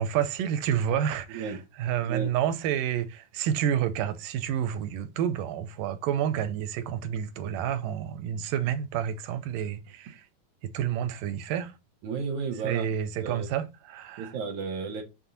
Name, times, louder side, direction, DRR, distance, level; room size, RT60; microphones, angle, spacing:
voice 1, 0.0-10.3 10.6-11.7 12.6-14.3, right 9 dB, 85° right, 2.4 m, -29 dB
voice 2, 12.0-12.9 13.2-13.5 14.2-15.0, right 5 dB, 65° right, 2.7 m, -32 dB
7.5 x 3.4 x 4.0 m
omnidirectional pair, 3.8 m